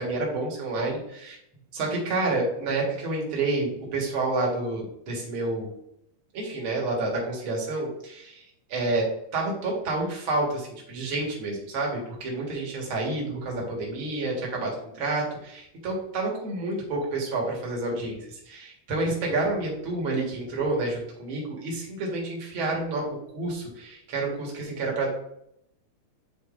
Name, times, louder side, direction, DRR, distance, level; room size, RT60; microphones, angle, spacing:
voice 1, 0.0-1.4 1.7-5.7 6.3-8.4 8.7-25.1, right 2 dB, 45° right, -2 dB, 2.0 m, -29 dB
9.9 x 4.2 x 2.5 m, 0.77 s
omnidirectional pair, 3.7 m